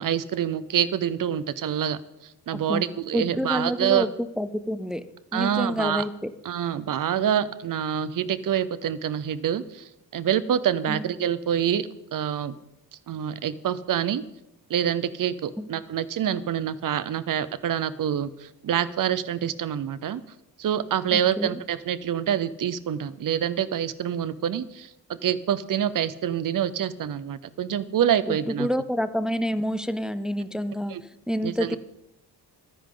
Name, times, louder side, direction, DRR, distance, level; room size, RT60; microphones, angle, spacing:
voice 1, 0.0-2.0 2.5-4.1 5.3-6.0 6.4-12.6 13.1-14.2 14.7-20.2 20.6-24.9 25.2-28.7 30.9-31.0 31.4-31.8, right 9 dB, 50° right, 15 dB, 0.8 m, -26 dB
voice 2, 2.5-2.8 3.1-4.1 4.4-5.0 5.3-6.3 10.9-11.1 15.6-15.8 21.1-21.6 28.3-31.8, equal, ahead, 12 dB, 0.4 m, -28 dB
23.5 x 10.0 x 3.9 m, 0.89 s
wide cardioid pair, 165°, 40 cm